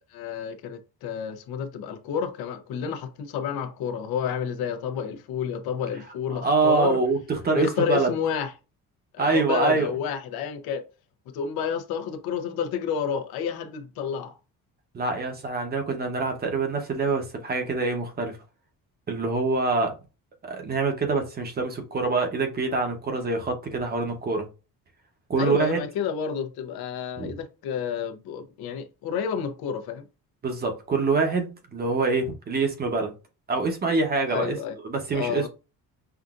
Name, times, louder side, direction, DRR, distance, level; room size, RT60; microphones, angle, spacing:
voice 1, 0.1-7.0 7.5-8.5 9.1-10.8 11.3-14.3 25.4-30.1 34.3-34.7 35.1-35.5, left 7 dB, 80° left, 0.9 m, -30 dB
voice 2, 6.4-8.1 9.2-9.9 14.9-18.4 19.1-20.0 20.4-24.5 25.3-25.8 27.2-27.3 30.4-33.1 33.5-34.6 34.8-35.5, right 3 dB, 25° right, 0.8 m, -25 dB
5.8 x 2.5 x 2.4 m
cardioid pair, 170°, 37 cm